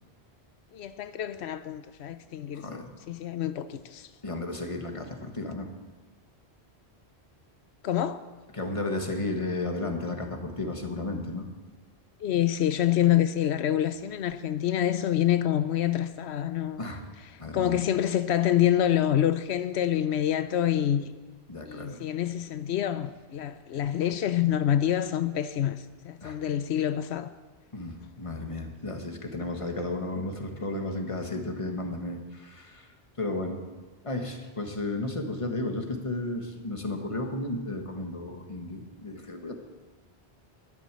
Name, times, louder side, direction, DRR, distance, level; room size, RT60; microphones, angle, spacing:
voice 1, 0.7-2.6 3.1-4.1 7.8-8.2 12.2-16.8 17.5-21.1 21.7-27.3, left 11 dB, 90° left, 0.9 m, -26 dB
voice 2, 2.5-2.9 4.2-5.7 8.5-11.5 16.8-17.0 17.4-17.8 21.5-22.0 26.2-26.4 27.7-32.9 33.2-33.6 34.0-39.5, left 2 dB, 30° left, 1.6 m, -33 dB
12.5 x 11.0 x 7.5 m
omnidirectional pair, 1.1 m